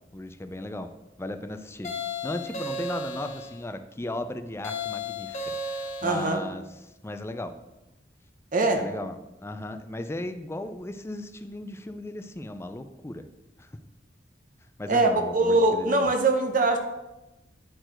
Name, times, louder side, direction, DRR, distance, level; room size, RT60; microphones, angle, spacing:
voice 1, 0.1-0.9 1.2-1.9 2.2-5.4 5.7-6.6 7.0-7.5 8.8-13.3 13.6-13.7 14.8-16.1, left 1 dB, 15° left, 9 dB, 0.4 m, -36 dB
sound 1, 1.8-3.6 4.6-6.4, left 2 dB, 40° left, 1.0 m, -34 dB
voice 2, 6.0-6.4 8.5-8.8 14.9-16.8, right 2 dB, 50° right, 5 dB, 0.8 m, -22 dB
9.4 x 4.5 x 4.4 m, 0.98 s
head